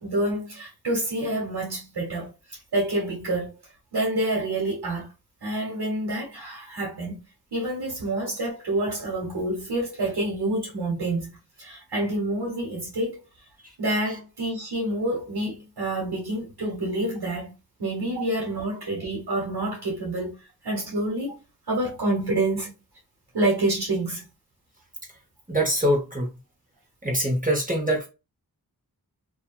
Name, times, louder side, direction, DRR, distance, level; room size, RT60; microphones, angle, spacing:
voice 1, 0.0-3.5 3.9-5.1 5.4-7.2 7.5-11.3 11.6-13.2 13.8-17.5 17.8-20.4 20.6-21.4 21.7-22.7 23.3-24.2, right 1 dB, 90° right, 1.2 m, -27 dB
voice 2, 25.5-26.3 27.0-28.1, equal, 20° right, 1.2 m, -23 dB
2.7 x 2.5 x 2.4 m
wide cardioid pair, 45°, 38 cm